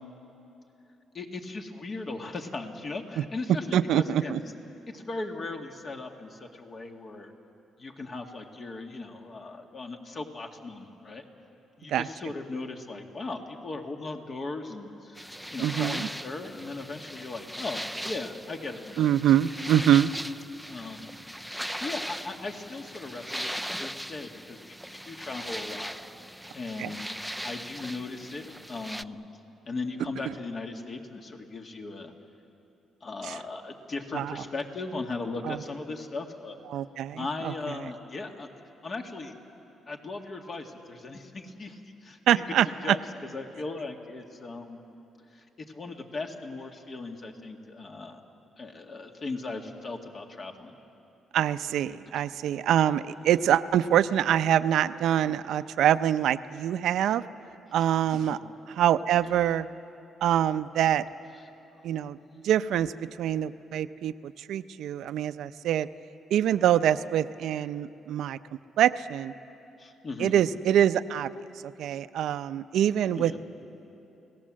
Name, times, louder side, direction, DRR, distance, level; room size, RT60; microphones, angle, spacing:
voice 1, 1.1-4.4 4.9-7.3 7.8-11.2 11.8-19.1 20.7-21.1 21.8-24.7 25.0-26.0 26.5-27.0 27.4-29.2 29.7-32.1 33.0-36.6 37.2-38.5 38.8-39.3 39.9-42.4 42.8-43.0 43.3-44.8 45.3-48.2 48.6-50.8 58.3-58.4 69.8-70.3 73.1-73.4, left 3 dB, 45° left, 3 dB, 2.1 m, -38 dB
voice 2, 3.7-4.4 11.9-12.1 15.6-16.1 19.0-20.1 26.8-26.9 33.2-33.4 34.1-34.4 35.5-35.6 36.7-37.5 42.3-43.0 51.3-57.2 57.7-58.4 58.8-59.7 60.2-61.0 61.8-62.2 62.4-62.9 63.2-65.9 66.3-68.4 68.8-69.3 70.2-71.3 71.6-73.4, right 10 dB, 80° right, 12 dB, 0.6 m, -25 dB
sound 1, 15.2-29.0, equal, ahead, 0.4 m, -39 dB
29.5 x 18.0 x 7.6 m, 2.9 s
cardioid pair, 90°, 0 cm